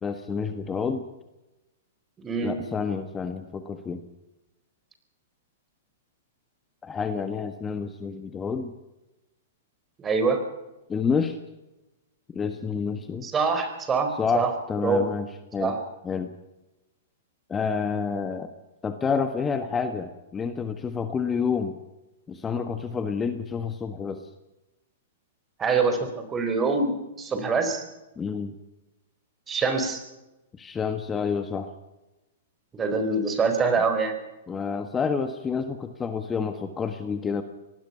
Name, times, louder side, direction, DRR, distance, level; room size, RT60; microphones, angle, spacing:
voice 1, 0.0-1.0 2.4-4.0 6.8-8.7 10.9-11.4 12.3-13.3 14.1-15.3 15.5-15.7 16.0-16.3 17.5-18.5 18.8-21.8 22.3-24.3 28.2-28.5 30.6-31.7 34.5-37.4, left 5 dB, 20° left, 8 dB, 1.5 m, -29 dB
voice 2, 2.2-2.6 10.0-10.4 13.2-14.1 14.3-14.5 14.8-15.1 15.6-15.8 25.6-27.8 29.5-30.0 32.7-34.2, right 4 dB, 20° right, 7 dB, 4.6 m, -24 dB
24.5 x 19.5 x 5.7 m, 1.0 s
hypercardioid pair, 115°, 0 cm